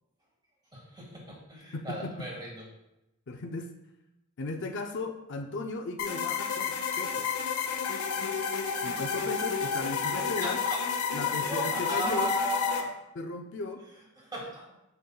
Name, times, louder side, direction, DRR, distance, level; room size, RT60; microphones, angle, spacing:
voice 1, 0.7-2.7 10.0-10.9 11.3-12.9 14.2-14.7, equal, 20° right, -3 dB, 1.9 m, -36 dB
voice 2, 1.7-2.3 3.3-3.7 4.4-7.4 8.8-10.6 11.1-12.3 13.2-13.8, left 3 dB, 55° left, 3 dB, 0.5 m, -36 dB
sound 1, 6.0-12.8, left 6 dB, 80° left, 0.9 m, -31 dB
7.2 x 6.4 x 2.3 m, 0.93 s
head